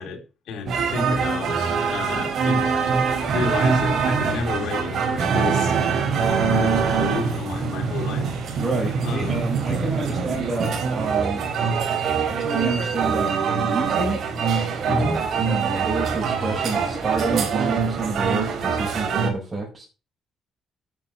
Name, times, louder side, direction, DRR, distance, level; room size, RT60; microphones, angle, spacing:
voice 1, 0.0-3.0 3.3-5.8 6.5-8.3 9.0-9.4 14.9-15.2, left 4 dB, 75° left, 2 dB, 3.9 m, -31 dB
sound 1, 0.7-19.3, right 5 dB, 65° right, 3.7 m, -23 dB
voice 2, 8.6-11.4 12.3-14.2 14.8-19.9, right 3 dB, 30° right, -3 dB, 6.0 m, -29 dB
8.7 x 7.5 x 7.5 m, 0.31 s
cardioid pair, 90°, 0 cm